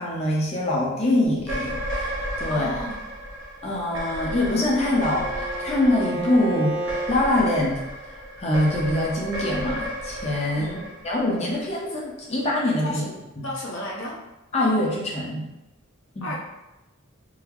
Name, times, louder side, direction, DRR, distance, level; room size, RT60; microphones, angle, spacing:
voice 1, 0.0-2.1 2.4-2.7 3.6-10.8 11.0-13.0 13.4-13.5 14.5-15.4 16.2-16.3, left 1 dB, 30° left, -3 dB, 0.6 m, -24 dB
sound 1, 1.4-11.9, equal, 60° right, 0.8 m, -33 dB
voice 2, 2.4-3.0 10.6-10.9 12.8-13.2 13.4-14.2 16.2-16.4, left 1 dB, 75° left, -3 dB, 0.8 m, -33 dB
Bowed string instrument, 4.0-7.2, right 1 dB, 25° right, 0.9 m, -33 dB
3.7 x 2.0 x 2.9 m, 0.98 s
head